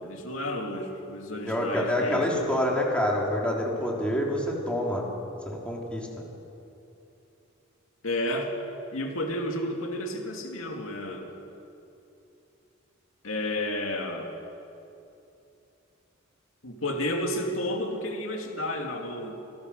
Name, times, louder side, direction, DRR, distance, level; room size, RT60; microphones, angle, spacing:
voice 1, 0.0-2.6 8.0-8.5 8.9-11.3 13.2-14.3 16.6-19.3, left 1 dB, 90° left, 2 dB, 2.4 m, -31 dB
voice 2, 1.4-5.1 5.5-6.1, left 1 dB, 5° left, -2 dB, 3.6 m, -27 dB
26.0 x 17.0 x 6.7 m, 2.8 s
head